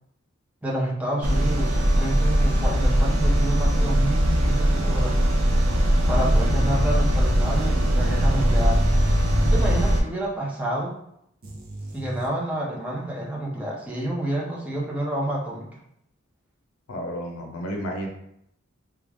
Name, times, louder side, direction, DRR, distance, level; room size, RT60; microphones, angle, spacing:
voice 1, 0.6-5.2 6.1-8.8 9.4-11.0 11.9-15.7, right 1 dB, 5° right, -4 dB, 0.6 m, -29 dB
sound 1, 1.2-10.0, equal, 85° right, 0.6 m, -20 dB
sound 2, 5.7-9.4 9.7-9.8 11.4-12.3, right 2 dB, 45° right, 0.6 m, -38 dB
voice 2, 16.9-18.1, equal, 90° left, 1 dB, 0.7 m, -31 dB
3.0 x 2.4 x 3.4 m, 0.75 s
head